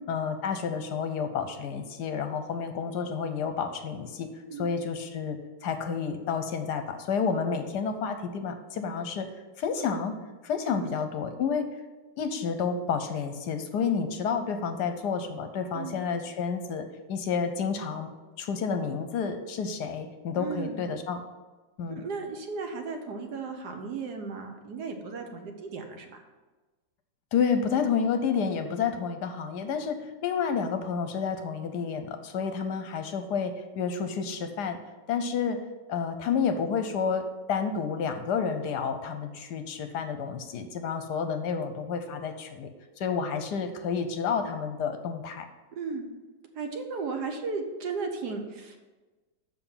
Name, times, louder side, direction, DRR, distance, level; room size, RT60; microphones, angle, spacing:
voice 1, 0.1-4.3 4.6-9.3 9.6-10.2 10.4-11.7 12.2-18.1 18.4-21.2 21.8-22.0 27.3-34.8 35.1-35.6 35.9-42.7 43.0-45.4, left 6 dB, 70° left, 8 dB, 1.2 m, -30 dB
voice 2, 20.4-20.8 21.9-26.2 45.7-46.0 46.5-48.8, right 4 dB, 65° right, 4 dB, 1.4 m, -35 dB
7.0 x 5.8 x 5.6 m, 1.2 s
omnidirectional pair, 2.0 m